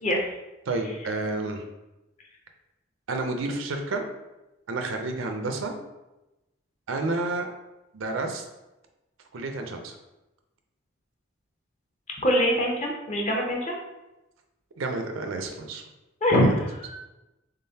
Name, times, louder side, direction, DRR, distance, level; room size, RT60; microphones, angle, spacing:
voice 1, 0.7-1.6 3.1-4.0 4.7-5.7 6.9-7.5 7.9-8.4 9.3-10.0 14.8-15.8 16.4-16.5, right 2 dB, 80° right, 4 dB, 0.5 m, -30 dB
voice 2, 12.2-13.8 16.2-17.0, equal, 35° left, 0 dB, 0.7 m, -23 dB
3.7 x 3.6 x 2.7 m, 1.0 s
head